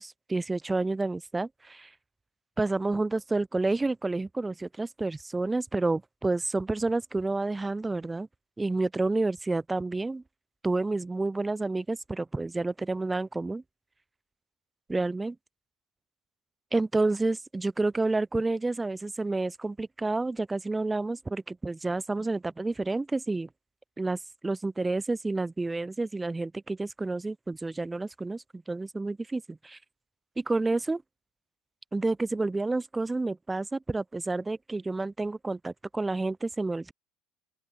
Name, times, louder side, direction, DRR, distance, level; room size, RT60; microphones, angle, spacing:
voice 1, 0.0-1.9 2.6-8.3 8.6-10.2 10.6-13.6 14.9-15.4 16.7-23.5 24.0-29.8 30.4-31.0 31.9-36.9, right 3 dB, 10° right, 0.8 m, -29 dB
open air
cardioid pair, 155°, 0 cm